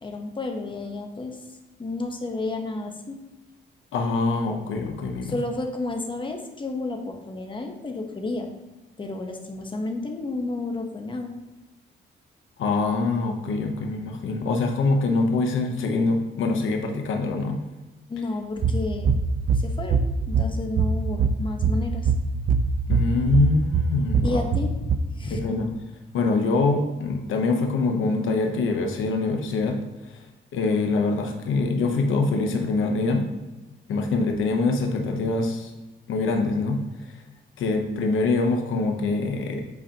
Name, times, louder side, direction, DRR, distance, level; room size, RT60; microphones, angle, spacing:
voice 1, 0.0-1.4 1.8-3.2 5.2-8.5 9.0-11.3 18.1-19.1 19.5-22.1 24.2-25.4, left 2 dB, 25° left, 3 dB, 1.0 m, -31 dB
voice 2, 3.9-5.4 12.6-17.6 22.9-24.4 25.3-25.7 26.1-29.8 30.5-33.3 33.9-35.7 36.1-36.8 37.6-39.6, left 3 dB, 80° left, 3 dB, 0.9 m, -24 dB
sound 1, 18.6-25.0, right 4 dB, 45° right, 0.4 m, -23 dB
7.9 x 4.9 x 2.9 m, 1.1 s
cardioid pair, 105°, 20 cm